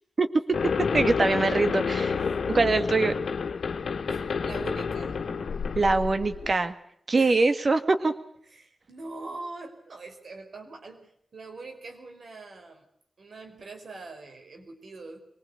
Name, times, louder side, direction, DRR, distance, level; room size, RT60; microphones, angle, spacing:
sound 1, 0.5-6.5, left 5 dB, 85° left, 1.5 m, -29 dB
voice 1, 0.9-3.1 5.8-6.7 7.1-8.1, right 3 dB, 55° right, 10 dB, 2.0 m, -23 dB
voice 2, 4.1-5.2 7.1-8.1 8.5-12.9 13.2-15.2, right 3 dB, 75° right, 5 dB, 5.0 m, -43 dB
24.5 x 20.0 x 8.4 m, 0.68 s
cardioid pair, 45°, 0 cm